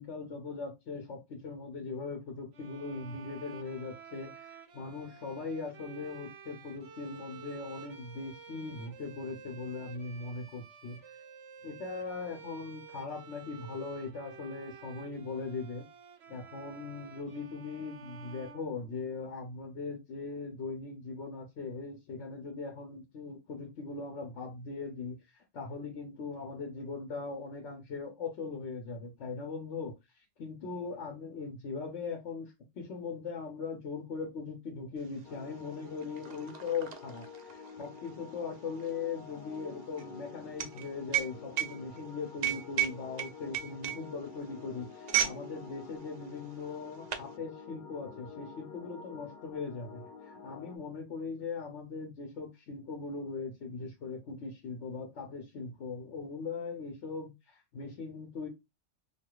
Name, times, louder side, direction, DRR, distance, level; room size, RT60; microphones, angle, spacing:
voice 1, 0.0-4.3 4.7-11.0 11.6-15.8 16.3-29.9 30.4-58.5, left 4 dB, 75° left, 1.2 m, -40 dB
sound 1, 2.5-19.4, right 5 dB, 70° right, 0.9 m, -51 dB
sound 2, 35.1-35.2 35.5-45.4 45.7-46.0 46.7-47.3, right 11 dB, 50° right, 0.5 m, -34 dB
sound 3, 35.2-50.8, left 5 dB, 55° left, 0.6 m, -49 dB
4.7 x 2.7 x 2.3 m
omnidirectional pair, 1.2 m